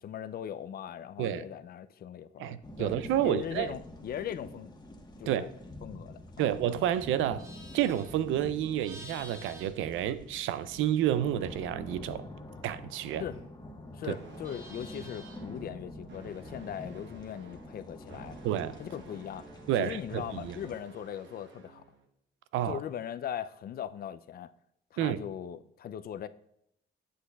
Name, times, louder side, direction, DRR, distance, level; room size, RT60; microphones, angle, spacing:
voice 1, 0.0-4.7 5.2-5.5 5.8-6.5 13.2-13.4 13.9-18.4 18.8-19.5 19.8-21.8 22.7-24.5 24.9-26.3, left 9 dB, 50° left, 0.4 m, -39 dB
voice 2, 2.4-3.7 5.3-5.5 6.4-7.5 7.7-12.3 12.6-13.2 14.1-14.2 18.4-18.8 19.7-20.6 22.5-22.8 25.0-25.2, right 11 dB, 85° right, 0.4 m, -30 dB
sound 1, 2.6-20.8, left 1 dB, 20° left, 1.1 m, -47 dB
Livestock farm animals working animals, 7.4-10.8 11.1-13.7 14.0-15.6, equal, 15° right, 1.7 m, -52 dB
sound 2, 14.1-22.1, right 3 dB, 65° right, 1.1 m, -53 dB
8.3 x 7.6 x 2.3 m
cardioid pair, 90°, 20 cm